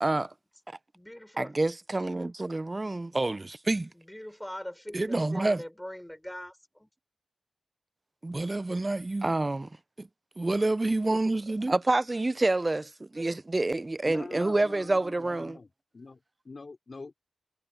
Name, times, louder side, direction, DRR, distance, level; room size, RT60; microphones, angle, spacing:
voice 1, 0.0-0.3 0.7-0.8 1.4-3.9 4.9-5.6 8.2-9.7 10.0-10.1 10.4-15.6, right 2 dB, 30° right, 0.5 m, -28 dB
voice 2, 0.9-1.5 3.0-3.2 3.9-6.9, left 1 dB, 10° left, 6.1 m, -42 dB
voice 3, 14.0-15.7 15.9-17.2, left 3 dB, 50° left, 3.1 m, -44 dB
cardioid pair, 60°, 0 cm